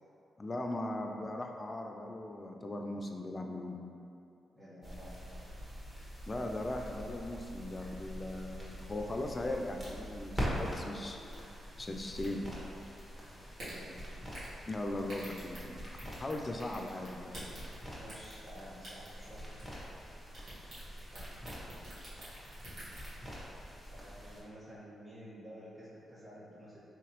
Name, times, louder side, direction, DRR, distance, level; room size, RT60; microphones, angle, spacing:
voice 1, 0.4-3.8 6.3-11.2 11.8-12.4 14.7-17.4, left 1 dB, 35° left, 3 dB, 0.4 m, -39 dB
voice 2, 4.5-5.5 13.3-14.0 17.9-19.4 21.1-21.2 24.0-26.8, equal, ahead, -12 dB, 1.5 m, -51 dB
sound 1, 4.8-24.4, equal, 20° right, 1.2 m, -44 dB
sound 2, 9.8-10.2 10.6-10.7 11.3-11.5 12.1-12.3 12.8-13.0 13.6-13.7 14.3-14.5 15.0-16.3 16.6-17.8 18.1-18.6 18.8-19.3 19.6-20.1 20.3-23.1, right 1 dB, 75° right, 1.3 m, -48 dB
3.5 x 2.8 x 3.0 m, 2.6 s
supercardioid pair, 50°, 0 cm